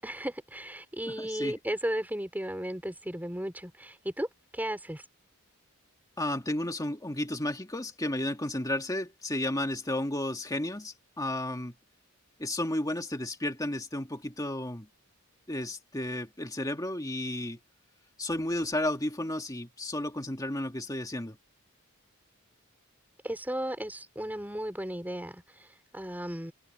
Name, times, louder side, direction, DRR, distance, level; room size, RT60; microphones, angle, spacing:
voice 1, 0.0-4.3 4.5-5.1 23.2-26.5, right 1 dB, 10° right, 4.5 m, -35 dB
voice 2, 1.1-1.5 6.2-11.7 12.4-14.9 15.5-17.6 18.2-21.4, left 1 dB, 15° left, 2.1 m, -33 dB
head